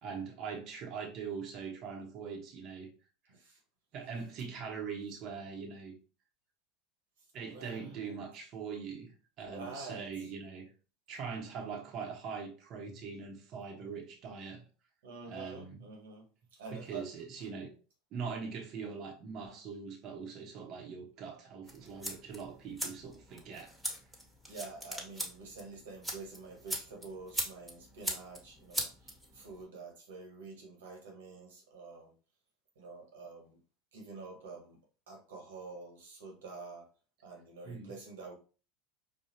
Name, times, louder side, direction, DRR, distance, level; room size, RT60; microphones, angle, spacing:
voice 1, 0.0-2.9 3.9-5.9 7.3-10.7 11.1-14.6 15.2-15.8 16.7-17.7 18.1-23.7 37.6-37.9, right 5 dB, 50° right, 1.0 m, -42 dB
voice 2, 7.4-8.2 9.5-10.1 15.0-16.2 16.6-17.0 21.8-21.9 24.4-32.1 32.7-33.6 33.9-34.8 35.1-36.9 37.2-38.3, right 4 dB, 85° right, 1.5 m, -47 dB
sound 1, 21.6-29.6, equal, 5° right, 1.4 m, -41 dB
4.9 x 2.4 x 2.8 m
hypercardioid pair, 105°, 0 cm